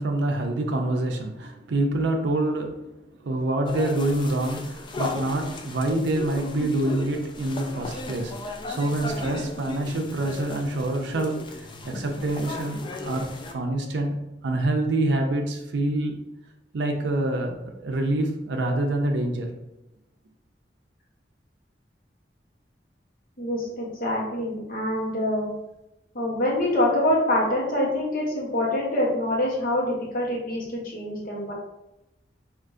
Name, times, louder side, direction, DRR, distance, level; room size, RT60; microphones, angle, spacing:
voice 1, 0.0-2.9 3.2-16.1 16.7-19.5, right 1 dB, 80° right, 3 dB, 0.5 m, -26 dB
sound 1, 3.7-13.5, left 3 dB, 30° left, 0.3 m, -36 dB
voice 2, 23.4-25.5 26.1-31.5, left 1 dB, 55° left, -3 dB, 1.0 m, -25 dB
3.5 x 2.5 x 2.5 m, 0.92 s
head